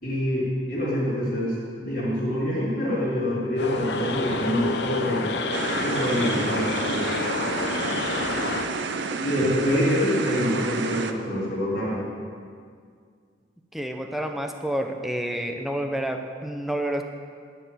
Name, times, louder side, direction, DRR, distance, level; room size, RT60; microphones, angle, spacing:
voice 1, 0.0-5.4 5.8-7.2 9.2-12.0, equal, 55° left, -14 dB, 3.1 m, -26 dB
sound 1, 3.6-8.7, left 3 dB, 75° left, 0.8 m, -28 dB
sound 2, 5.5-11.1, right 4 dB, 85° right, 0.6 m, -30 dB
voice 2, 13.7-17.0, right 1 dB, ahead, 4 dB, 0.6 m, -29 dB
11.5 x 4.7 x 7.9 m, 2.1 s
head